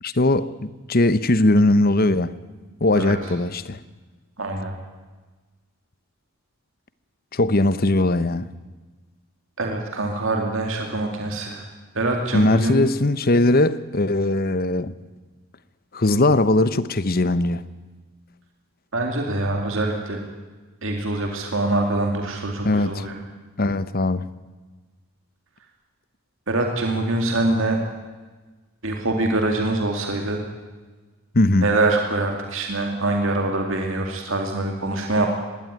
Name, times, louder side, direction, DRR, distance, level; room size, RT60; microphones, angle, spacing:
voice 1, 0.0-2.3 2.8-3.8 7.3-8.5 12.3-14.9 15.9-17.6 22.6-23.1 23.6-24.2 31.3-31.7, left 2 dB, 40° left, 0.9 m, -20 dB
voice 2, 4.4-4.7 9.6-11.6 12.0-12.8 18.9-20.2 20.8-23.1 26.5-27.8 28.8-30.4 31.6-35.3, right 2 dB, 60° right, 2.4 m, -24 dB
20.5 x 17.0 x 9.6 m
head